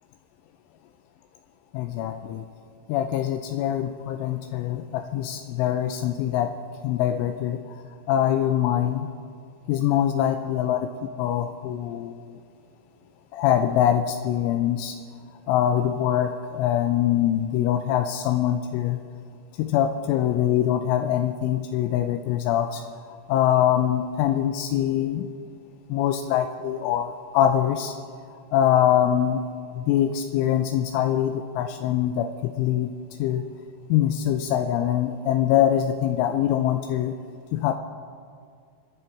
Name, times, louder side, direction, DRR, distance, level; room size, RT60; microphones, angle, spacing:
voice 1, 1.7-2.4 2.9-6.6 6.8-7.8 8.1-9.1 9.7-12.3 13.3-15.0 15.5-19.0 19.6-22.8 23.3-25.3 25.9-28.0 28.5-29.4 29.7-32.9 33.2-33.4 33.9-37.1 37.5-37.7, left 11 dB, 85° left, 7 dB, 3.0 m, -23 dB
25.5 x 10.5 x 4.6 m, 2.1 s
omnidirectional pair, 5.7 m